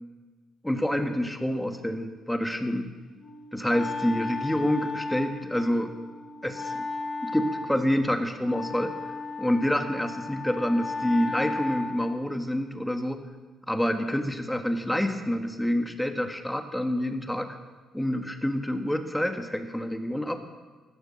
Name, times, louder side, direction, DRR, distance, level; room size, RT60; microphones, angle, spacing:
voice 1, 0.6-2.9 3.5-5.9 6.4-6.9 7.2-8.9 9.4-13.2 13.7-17.5 17.9-20.4, equal, 5° left, 6 dB, 1.5 m, -27 dB
Wind instrument woodwind instrument, 3.2-12.3, left 3 dB, 45° left, 2.5 m, -35 dB
14.5 x 12.0 x 7.6 m, 1.3 s
cardioid pair, 90°, 0 cm